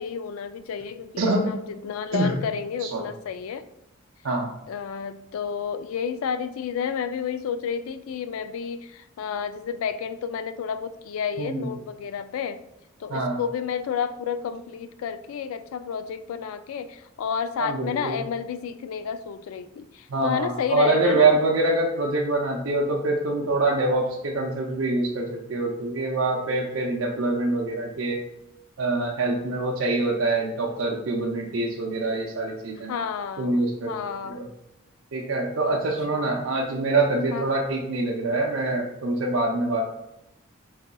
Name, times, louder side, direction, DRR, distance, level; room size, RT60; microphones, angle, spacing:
voice 1, 0.0-3.7 4.7-12.6 13.0-21.4 32.9-34.4 35.7-35.8 36.1-36.4 37.3-37.5, left 7 dB, 80° left, 13 dB, 0.3 m, -31 dB
voice 2, 1.2-1.5 2.1-2.3 2.8-3.1 4.2-4.5 11.4-11.7 13.1-13.4 17.6-18.2 20.1-28.2 28.8-32.9 33.4-33.9 34.2-34.5 35.1-39.9, right 2 dB, 65° right, -2 dB, 0.5 m, -25 dB
3.9 x 3.9 x 2.2 m, 0.85 s
head